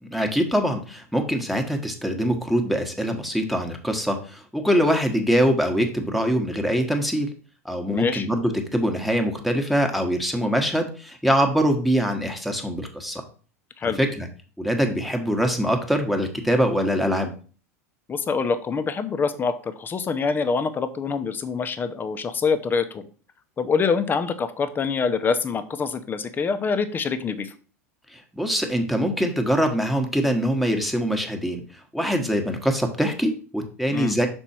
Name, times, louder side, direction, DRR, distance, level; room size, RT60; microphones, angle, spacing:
voice 1, 0.0-7.3 7.6-13.2 13.8-14.3 14.6-17.3 28.1-31.6 31.9-34.3, equal, ahead, 4 dB, 1.3 m, -23 dB
voice 2, 7.9-8.3 13.8-14.0 18.1-23.1 23.6-27.5 33.9-34.1, left 5 dB, 25° left, 10 dB, 0.8 m, -25 dB
6.0 x 4.4 x 4.4 m, 0.40 s
hypercardioid pair, 100°, 8 cm